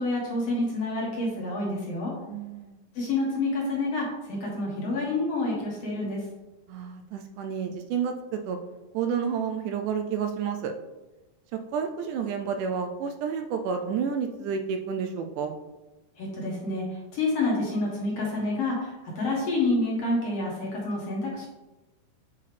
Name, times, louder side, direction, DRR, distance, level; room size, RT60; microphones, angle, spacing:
voice 1, 0.0-2.1 3.0-6.3 16.2-21.5, left 2 dB, 55° left, -3 dB, 2.1 m, -28 dB
voice 2, 2.3-2.8 6.7-8.6 8.9-10.7 11.7-15.5, right 6 dB, 80° right, 5 dB, 1.9 m, -30 dB
8.3 x 4.7 x 3.3 m, 1.1 s
omnidirectional pair, 3.8 m